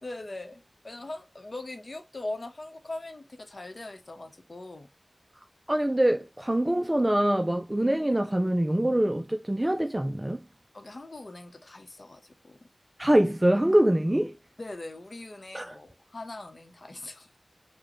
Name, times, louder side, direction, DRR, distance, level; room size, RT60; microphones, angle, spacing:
voice 1, 0.0-4.9 10.7-12.6 14.6-17.4, left 2 dB, 55° left, 0.7 m, -41 dB
voice 2, 5.7-10.4 13.0-14.4 15.5-15.8, right 1 dB, 20° right, 0.3 m, -24 dB
4.8 x 2.1 x 3.0 m
wide cardioid pair, 60°, 0 cm